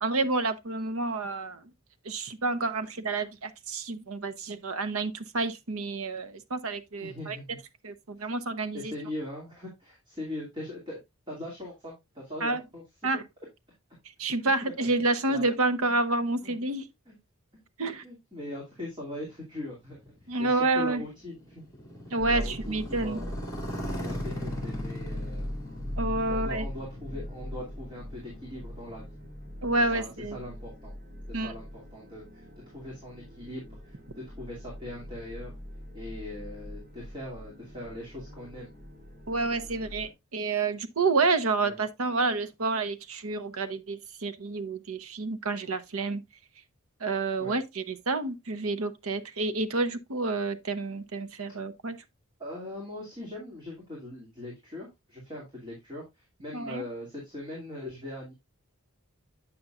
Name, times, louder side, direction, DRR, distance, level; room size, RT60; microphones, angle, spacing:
voice 1, 0.0-1.7 2.0-7.4 7.8-8.9 12.4-12.6 13.0-13.2 14.2-16.9 17.8-18.0 20.3-21.0 22.1-23.2 26.0-26.6 29.6-30.4 31.3-31.5 39.3-46.2 47.0-52.0 56.5-56.8, right 3 dB, 75° right, 0.8 m, -29 dB
voice 2, 7.0-7.6 8.2-8.3 8.7-11.0 11.3-12.8 13.1-13.2 14.4-14.5 15.0-15.8 16.4-16.5 17.1-17.2 17.5-17.6 18.0-20.1 20.4-21.6 22.3-23.4 24.0-25.5 26.3-29.0 29.9-30.9 31.3-32.4 32.7-35.5 35.9-38.7 41.6-41.8 47.4-47.6 52.4-58.3, left 1 dB, 20° right, 2.5 m, -41 dB
Motorcycle, 19.6-29.6, left 1 dB, 15° left, 2.6 m, -40 dB
sound 1, 22.2-40.1, equal, 45° right, 2.5 m, -41 dB
8.5 x 6.9 x 2.5 m
head